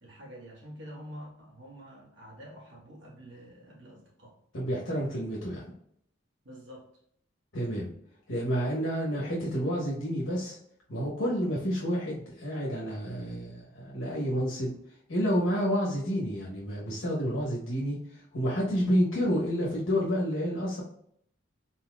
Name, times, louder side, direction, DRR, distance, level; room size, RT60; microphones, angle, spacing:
voice 1, 0.0-4.4 6.4-6.9, equal, 65° right, -3 dB, 1.5 m, -47 dB
voice 2, 4.5-5.6 7.5-7.9 8.3-10.6 10.9-14.7 15.1-20.8, equal, 80° left, -5 dB, 1.2 m, -29 dB
4.3 x 4.0 x 2.4 m, 0.68 s
head